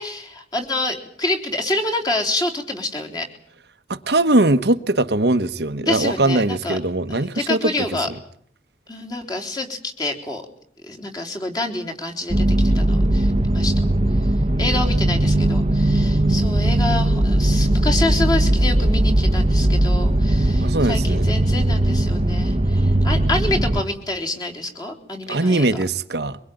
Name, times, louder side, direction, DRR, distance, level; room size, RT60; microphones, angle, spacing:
voice 1, 0.0-3.3 5.8-6.8 7.1-8.1 8.9-10.4 10.8-13.8 14.2-14.3 14.6-25.7, left 2 dB, 20° left, 3.6 m, -27 dB
voice 2, 3.9-7.9 20.6-21.2 25.3-26.4, right 2 dB, 65° right, 1.2 m, -20 dB
sound 1, 12.3-23.8, right 1 dB, 30° right, 1.1 m, -19 dB
24.0 x 21.5 x 9.2 m
head